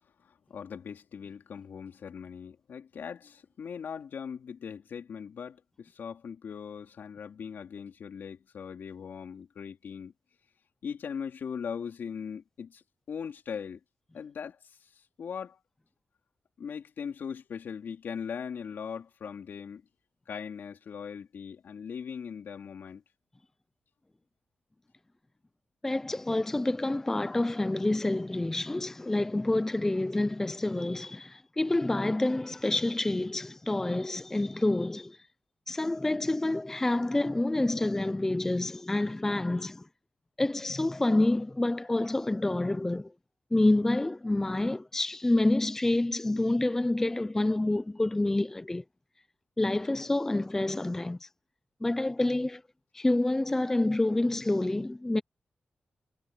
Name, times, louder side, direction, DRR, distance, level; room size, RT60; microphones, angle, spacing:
voice 1, 0.2-10.1 10.8-13.8 14.1-15.6 16.6-19.9 20.3-23.0, left 7 dB, 75° left, 3.1 m, -40 dB
voice 2, 25.8-35.2 35.7-39.9 40.4-43.1 43.5-48.8 49.6-51.3 51.8-52.6 52.9-55.2, left 2 dB, 10° left, 0.4 m, -28 dB
wide cardioid pair, 165°, 3 cm